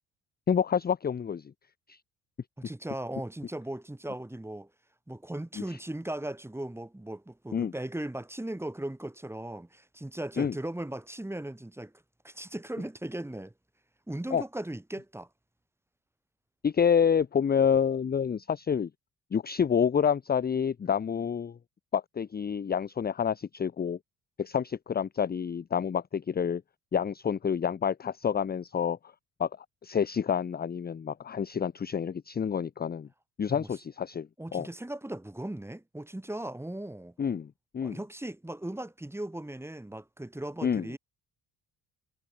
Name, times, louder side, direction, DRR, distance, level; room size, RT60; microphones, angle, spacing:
voice 1, 0.5-1.5 1.9-2.0 5.6-5.8 7.5-7.7 10.4-10.5 14.3-14.4 16.6-18.9 19.3-21.6 21.9-24.0 24.4-26.6 26.9-29.0 29.4-29.5 29.8-33.1 33.4-34.7 37.2-37.5 37.7-38.0 40.6-40.9, left 7 dB, 20° left, 0.6 m, -28 dB
voice 2, 2.6-4.7 5.1-11.9 12.2-13.5 14.1-15.3 33.5-33.7 34.4-37.1 37.8-41.0, right 1 dB, 5° right, 1.0 m, -38 dB
hypercardioid pair, 50°, 49 cm